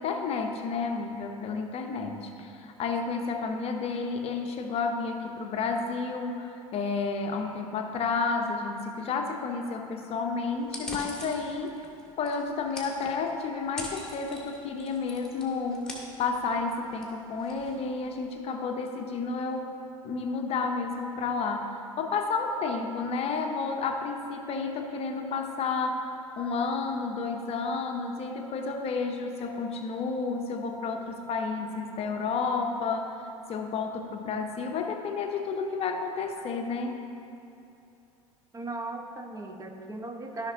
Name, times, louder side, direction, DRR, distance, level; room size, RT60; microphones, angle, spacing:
voice 1, 0.0-11.8 12.2-19.7 20.0-26.0 26.4-33.2 33.5-37.0, left 4 dB, 35° left, 4 dB, 0.8 m, -31 dB
sound 1, 10.6-18.4, left 1 dB, 5° left, 1.9 m, -44 dB
voice 2, 38.5-40.5, right 2 dB, 20° right, 3 dB, 1.0 m, -37 dB
14.0 x 5.9 x 2.8 m, 2.7 s
figure-of-eight pair, 75°, 17 cm